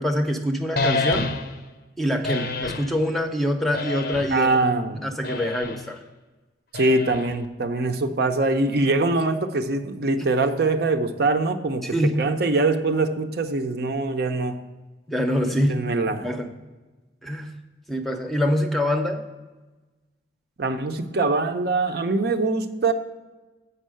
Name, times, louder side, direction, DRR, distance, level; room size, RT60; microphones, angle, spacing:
voice 1, 0.0-1.3 2.0-4.6 4.9-6.0 11.8-12.2 15.1-15.8 16.2-16.5 17.2-17.5 17.9-19.2, equal, ahead, 4 dB, 0.6 m, -25 dB
sound 1, 0.8-1.7 2.2-2.9 3.7-4.5 5.2-5.9 6.7-7.5, left 3 dB, 55° left, 0.6 m, -28 dB
voice 2, 4.3-5.0 6.7-14.6 15.7-16.3 20.6-22.9, right 3 dB, 55° right, 6 dB, 0.6 m, -23 dB
8.0 x 5.5 x 6.3 m, 1.2 s
head